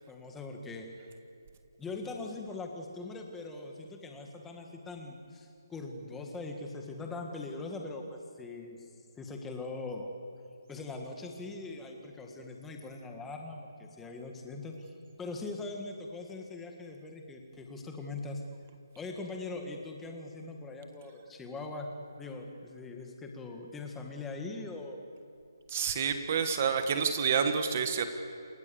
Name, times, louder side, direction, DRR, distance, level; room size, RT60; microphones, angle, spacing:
voice 1, 0.1-0.9 1.8-8.9 9.2-10.1 10.7-18.4 19.0-21.9 22.2-25.0, left 3 dB, 5° left, 2 dB, 1.8 m, -41 dB
voice 2, 25.7-28.1, right 6 dB, 25° right, 8 dB, 1.4 m, -28 dB
28.5 x 25.5 x 7.1 m, 2.5 s
hypercardioid pair, 175°, 2 cm